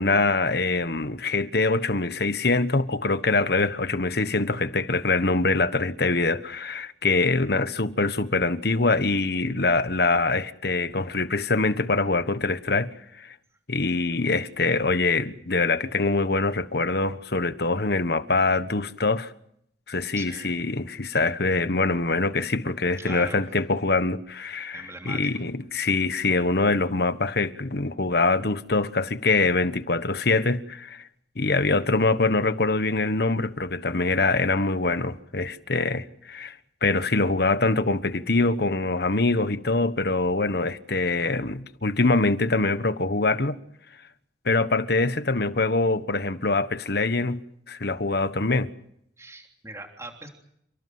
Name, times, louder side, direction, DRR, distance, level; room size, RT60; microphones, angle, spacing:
voice 1, 0.0-13.3 13.7-19.3 19.9-31.0 31.3-36.6 36.8-43.6 44.4-47.4 47.7-48.7, left 3 dB, 60° left, 1.3 m, -24 dB
voice 2, 20.1-20.5 23.0-23.4 24.7-25.3 49.2-50.3, right 2 dB, 15° right, 3.2 m, -40 dB
29.5 x 18.5 x 7.8 m
head